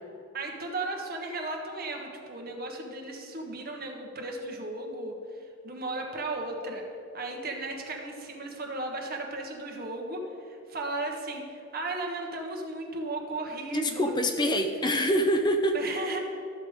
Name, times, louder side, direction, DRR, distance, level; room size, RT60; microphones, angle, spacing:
voice 1, 0.3-5.1 5.6-6.8 7.1-14.1 15.7-16.2, right 2 dB, 50° right, 2 dB, 1.4 m, -35 dB
voice 2, 13.7-15.8, equal, 20° left, 6 dB, 0.6 m, -25 dB
13.0 x 6.8 x 5.1 m, 2.6 s
head